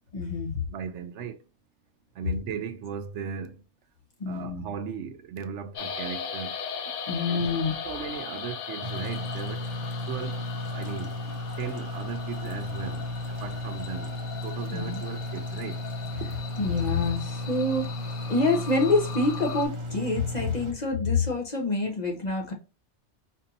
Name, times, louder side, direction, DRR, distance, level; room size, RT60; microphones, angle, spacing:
voice 1, 0.1-0.6 4.2-4.6 7.1-7.7 14.7-15.0 16.6-17.9 18.3-22.5, left 3 dB, 40° left, 0.9 m, -26 dB
voice 2, 0.7-1.4 2.1-3.6 4.3-6.6 7.2-7.5 7.8-9.7 10.1-11.2 11.6-15.8 16.2-16.3, right 7 dB, 80° right, 0.9 m, -37 dB
sound 1, 5.7-19.7, left 6 dB, 85° left, 1.0 m, -39 dB
sound 2, 8.8-20.7, left 1 dB, 30° right, 0.7 m, -34 dB
4.4 x 2.7 x 2.6 m
omnidirectional pair, 1.2 m